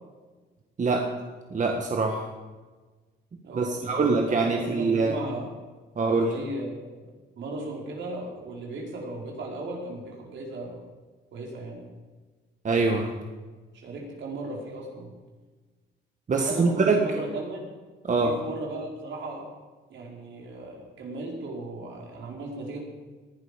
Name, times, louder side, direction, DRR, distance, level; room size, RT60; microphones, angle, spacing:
voice 1, 0.8-1.1 1.5-2.3 3.5-5.2 6.0-6.3 12.6-13.1 16.3-17.0 18.0-18.4, right 3 dB, 40° right, 2 dB, 1.7 m, -24 dB
voice 2, 3.4-5.5 6.2-10.8 11.3-11.9 13.7-15.1 16.3-17.7 18.1-19.4 19.9-22.8, right 2 dB, 70° right, -1 dB, 4.8 m, -36 dB
19.5 x 11.5 x 5.2 m, 1.3 s
cardioid pair, 90°, 20 cm